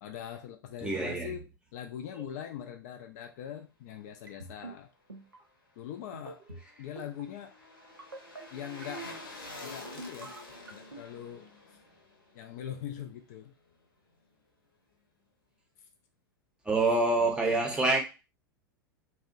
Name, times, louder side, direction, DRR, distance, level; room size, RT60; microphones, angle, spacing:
voice 1, 0.0-1.5 1.7-4.9 5.8-6.4 6.8-7.6 8.5-9.1 9.6-10.3 10.7-11.8 12.3-13.5 17.2-17.7, left 10 dB, 45° left, 0.3 m, -42 dB
voice 2, 0.8-1.3 10.3-10.4 16.7-18.0, right 2 dB, 10° right, 0.6 m, -26 dB
sound 1, 4.3-4.7 5.1-5.4 6.1-6.6 7.0-7.2 8.0-8.4 8.8-9.2 9.8-10.2 10.7-11.0, right 2 dB, 85° right, 0.5 m, -44 dB
sound 2, 6.2-13.4 13.7-13.8, left 1 dB, 80° left, 0.7 m, -47 dB
2.7 x 2.1 x 2.5 m
figure-of-eight pair, 90°, 12 cm